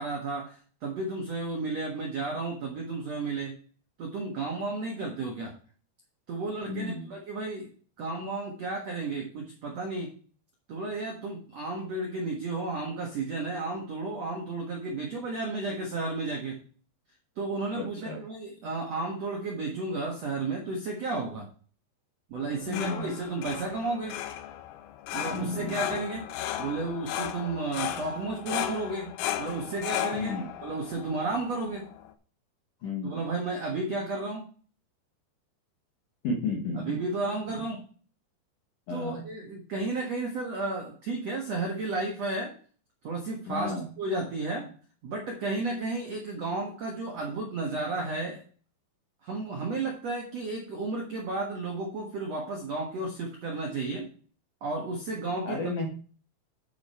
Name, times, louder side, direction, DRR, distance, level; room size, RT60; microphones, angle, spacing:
voice 1, 0.0-3.6 4.0-5.5 6.3-7.7 8.0-10.1 10.7-16.6 17.3-21.5 22.3-24.2 25.1-26.3 26.6-31.9 33.0-34.5 36.8-37.8 38.9-42.6 43.0-44.7 45.0-48.4 49.2-54.1 54.6-55.7, right 3 dB, 65° right, 0 dB, 1.6 m, -33 dB
voice 2, 6.6-7.1 17.7-18.2 22.7-23.1 25.3-26.0 30.1-30.5 32.8-33.2 36.2-37.0 38.9-39.3 43.5-43.8 55.5-55.9, left 3 dB, 65° left, 0 dB, 2.1 m, -33 dB
sound 1, 22.4-32.1, left 11 dB, 85° left, 3.1 m, -36 dB
9.3 x 6.5 x 4.4 m, 0.41 s
omnidirectional pair, 5.4 m